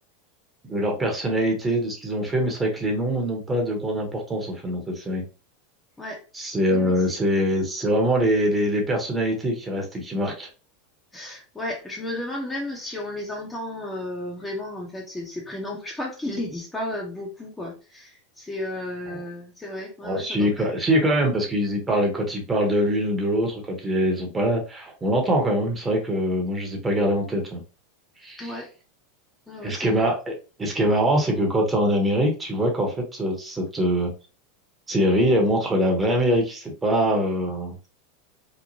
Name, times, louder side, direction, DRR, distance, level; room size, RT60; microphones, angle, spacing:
voice 1, 0.6-5.2 6.3-10.5 19.1-19.2 20.0-27.6 28.2-28.5 29.6-30.3 30.6-34.1 34.9-37.8, equal, 15° right, 1 dB, 0.9 m, -23 dB
voice 2, 11.1-20.7 28.4-28.7 29.5-30.1, left 1 dB, 10° left, -1 dB, 0.7 m, -33 dB
3.0 x 2.1 x 2.6 m, 0.34 s
hypercardioid pair, 95°, 0 cm